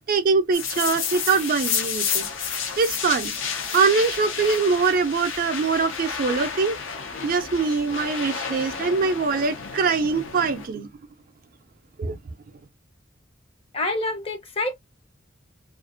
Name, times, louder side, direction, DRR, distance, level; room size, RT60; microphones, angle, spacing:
voice 1, 0.1-2.3 2.8-3.3 3.7-6.8 7.2-10.9 12.0-12.2, right 4 dB, 45° right, 0.4 m, -23 dB
sound 1, 0.5-10.7, left 6 dB, 85° left, 0.6 m, -31 dB
voice 2, 13.7-14.8, left 2 dB, 30° left, 0.6 m, -27 dB
2.4 x 2.2 x 2.4 m
head